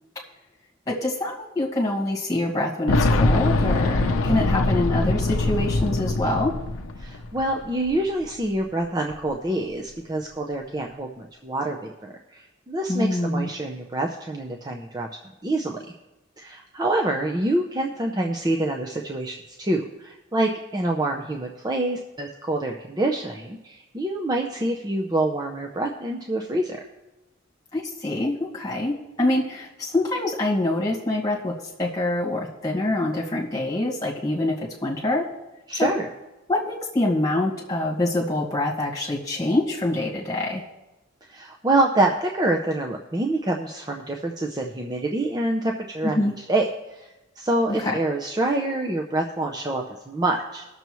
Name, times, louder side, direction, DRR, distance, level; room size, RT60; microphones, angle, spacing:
voice 1, 0.9-6.6 12.9-13.5 27.7-35.3 35.7-35.9 36.5-40.6 46.0-46.3 47.7-48.0, left 2 dB, 15° left, -4 dB, 1.8 m, -25 dB
Boom, 2.9-7.6 7.9-8.0 9.1-9.2, left 2 dB, 85° left, 0.6 m, -22 dB
voice 2, 7.0-15.1 15.4-15.8 16.4-26.8 35.7-36.1 41.3-46.2 46.5-47.1 47.4-50.7, right 2 dB, 20° right, 1 dB, 0.6 m, -26 dB
20.0 x 6.8 x 3.1 m, 1.0 s
head